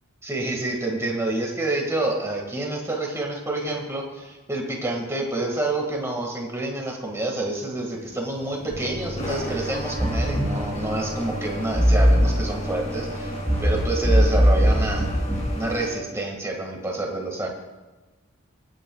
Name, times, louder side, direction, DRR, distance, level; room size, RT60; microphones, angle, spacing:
voice 1, 0.2-13.3 13.6-15.1 15.5-17.5, right 2 dB, 15° right, 0 dB, 1.8 m, -28 dB
Tilt Train Compressor, 7.7-15.9, equal, 30° left, 2.7 m, -36 dB
sound 1, 8.7-15.5, equal, 10° left, 2.4 m, -23 dB
23.0 x 9.3 x 2.3 m, 1.2 s
head